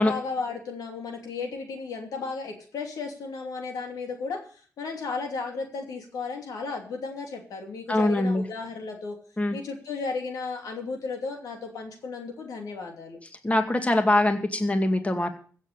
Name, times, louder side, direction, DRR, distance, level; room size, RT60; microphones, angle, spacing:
voice 1, 0.0-9.2 9.5-13.2, left 4 dB, 85° left, 3 dB, 2.9 m, -34 dB
voice 2, 7.9-8.4 9.4-9.6 13.4-15.3, left 1 dB, 25° left, 6 dB, 2.2 m, -23 dB
15.5 x 7.4 x 6.9 m, 0.43 s
cardioid pair, 65°, 6 cm